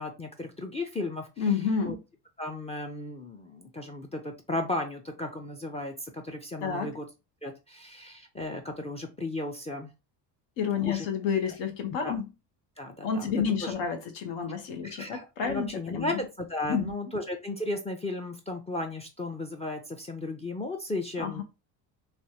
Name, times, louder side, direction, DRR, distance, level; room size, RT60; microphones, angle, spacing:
voice 1, 0.0-1.3 1.8-2.0 2.4-7.1 7.4-9.9 10.9-11.1 12.0-12.2 12.8-13.3 13.6-13.7 14.8-21.4, left 2 dB, 15° left, 0.4 m, -35 dB
voice 2, 1.4-2.0 6.6-7.0 10.6-12.3 13.0-16.2 16.7-16.9 21.2-21.4, left 6 dB, 75° left, 1.0 m, -30 dB
3.2 x 2.3 x 2.7 m
cardioid pair, 110°, 43 cm